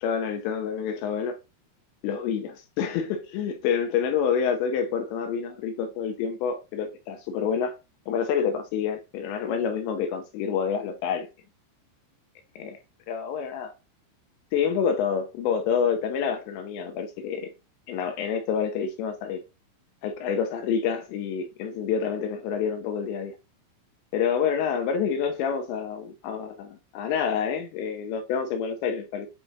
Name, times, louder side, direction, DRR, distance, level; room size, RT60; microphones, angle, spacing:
voice 1, 0.0-1.4 2.0-7.8 8.1-11.3 12.6-12.8 13.1-13.7 14.5-17.5 17.9-19.4 20.0-23.4 24.1-29.3, left 7 dB, 85° left, 2.6 m, -28 dB
8.7 x 4.4 x 2.6 m
omnidirectional pair, 5.5 m